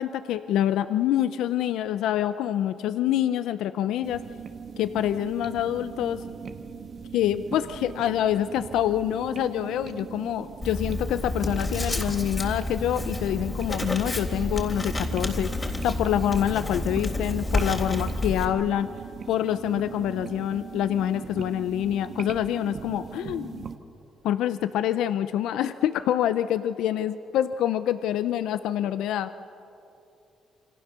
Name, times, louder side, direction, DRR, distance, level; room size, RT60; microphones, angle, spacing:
voice 1, 0.0-4.2 4.8-6.2 7.1-18.9 19.3-23.7 24.2-29.4, left 11 dB, 85° left, 12 dB, 0.6 m, -26 dB
sound 1, 4.0-23.8, right 6 dB, 50° right, 1.4 m, -40 dB
Writing, 10.6-18.5, left 2 dB, 25° left, 3.5 m, -30 dB
28.0 x 25.0 x 6.8 m, 2.8 s
cardioid pair, 90°, 0 cm